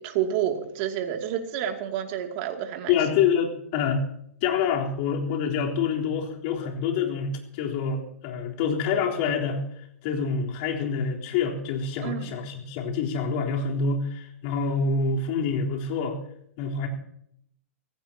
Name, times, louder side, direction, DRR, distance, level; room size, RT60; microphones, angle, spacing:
voice 1, 0.0-3.0 12.0-12.4, right 9 dB, 45° right, 4 dB, 2.7 m, -29 dB
voice 2, 2.9-4.0 4.4-9.6 10.0-16.2 16.6-16.9, left 6 dB, 45° left, -1 dB, 3.7 m, -26 dB
25.5 x 16.0 x 2.9 m, 0.69 s
hypercardioid pair, 120°, 8 cm